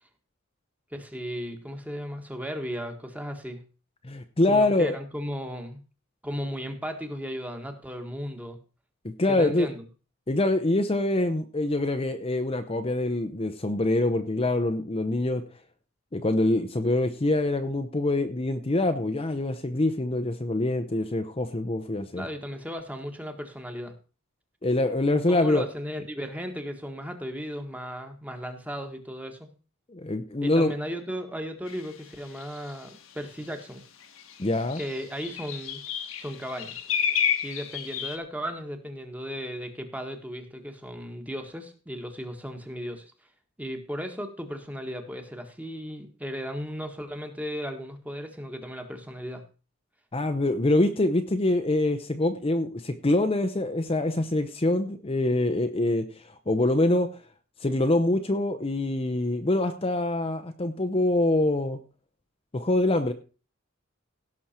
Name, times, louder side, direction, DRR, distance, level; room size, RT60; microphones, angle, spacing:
voice 1, 0.9-3.6 4.5-5.8 6.2-8.6 9.3-9.8 22.1-24.0 25.3-29.5 30.4-33.8 34.8-35.8 36.2-36.8 37.4-43.1 43.6-49.4, equal, 5° right, 6 dB, 1.5 m, -36 dB
voice 2, 4.0-4.9 9.2-9.7 10.3-15.4 16.1-22.2 24.6-25.7 29.9-30.7 34.4-34.8 50.1-57.1 57.6-61.8 62.5-63.1, left 2 dB, 30° left, 8 dB, 0.7 m, -25 dB
sound 1, 31.7-31.8 32.4-32.7 33.6-33.7 34.0-38.2, left 8 dB, 75° left, 1.4 m, -30 dB
17.0 x 6.4 x 4.4 m, 0.35 s
head